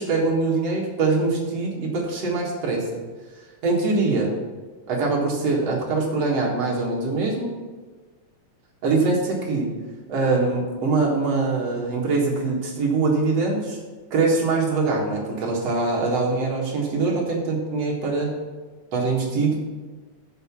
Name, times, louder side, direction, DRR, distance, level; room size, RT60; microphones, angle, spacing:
voice 1, 0.0-3.0 3.6-4.3 4.9-7.5 8.8-9.7 10.1-13.8 14.1-18.3 18.9-19.6, right 3 dB, 55° right, -2 dB, 2.6 m, -23 dB
7.1 x 6.6 x 7.1 m, 1.3 s
omnidirectional pair, 3.6 m